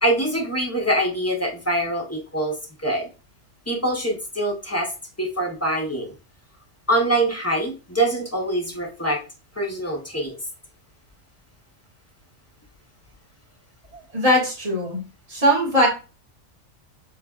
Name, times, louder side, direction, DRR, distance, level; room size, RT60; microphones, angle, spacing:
voice 1, 0.0-3.1 3.7-4.9 5.2-6.1 6.9-9.2 9.6-10.4, right 1 dB, 15° left, 1 dB, 0.6 m, -24 dB
voice 2, 13.9-15.0 15.3-15.9, equal, 30° right, -3 dB, 1.8 m, -20 dB
6.4 x 3.4 x 2.4 m, 0.32 s
omnidirectional pair, 1.3 m